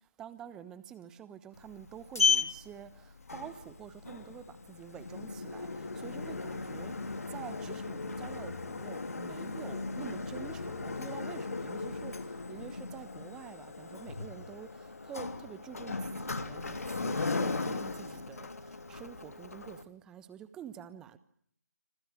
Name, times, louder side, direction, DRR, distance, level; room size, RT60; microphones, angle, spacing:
voice 1, 0.2-6.9 7.3-18.5 18.9-21.2, right 9 dB, 5° right, 1.1 m, -48 dB
Sliding door, 1.6-19.8, left 4 dB, 55° left, 3.0 m, -36 dB
26.5 x 26.5 x 6.4 m
figure-of-eight pair, 155°, 10 cm